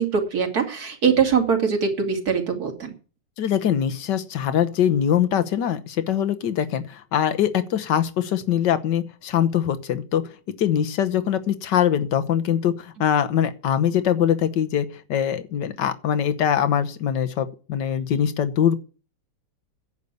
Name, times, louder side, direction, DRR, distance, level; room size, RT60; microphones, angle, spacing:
voice 1, 0.0-2.9, right 6 dB, 55° right, 4 dB, 2.9 m, -22 dB
voice 2, 3.4-10.2 10.6-18.8, left 9 dB, 70° left, 11 dB, 1.6 m, -22 dB
10.5 x 8.3 x 8.2 m, 0.37 s
omnidirectional pair, 2.0 m